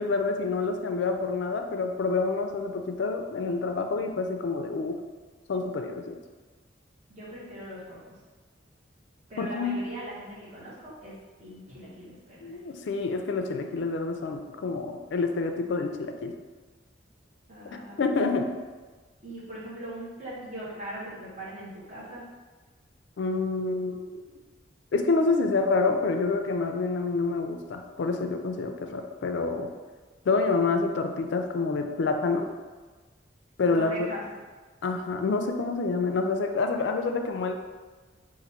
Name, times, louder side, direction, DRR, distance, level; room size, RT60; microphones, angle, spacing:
voice 1, 0.0-5.0 5.5-6.2 9.4-9.8 12.4-16.3 18.0-18.5 23.2-24.2 24.9-29.7 30.3-32.5 33.6-34.1 34.8-37.5, left 3 dB, 70° left, 5 dB, 0.4 m, -27 dB
voice 2, 7.1-8.0 9.3-11.1 11.4-12.6 17.5-18.1 19.2-22.2 33.7-34.2, right 1 dB, 40° right, -8 dB, 1.4 m, -40 dB
3.9 x 2.6 x 4.3 m, 1.3 s
head